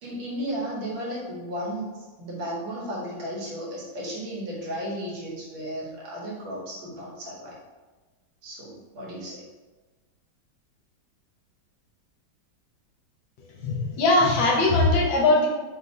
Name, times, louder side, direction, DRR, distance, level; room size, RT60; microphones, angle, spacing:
voice 1, 0.0-7.6 8.4-9.4, equal, 80° right, -4 dB, 2.0 m, -34 dB
voice 2, 13.6-15.5, left 2 dB, 75° left, 0 dB, 1.5 m, -20 dB
4.1 x 4.0 x 2.8 m, 1.3 s
omnidirectional pair, 2.2 m